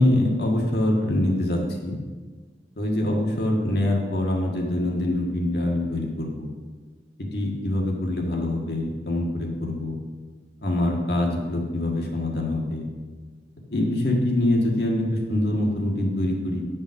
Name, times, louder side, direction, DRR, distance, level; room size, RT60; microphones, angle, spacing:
voice 1, 0.0-2.0 2.8-6.5 7.2-10.0 10.6-12.8 13.7-16.6, left 1 dB, 65° left, -1 dB, 1.7 m, -24 dB
10.5 x 5.4 x 6.3 m, 1.4 s
head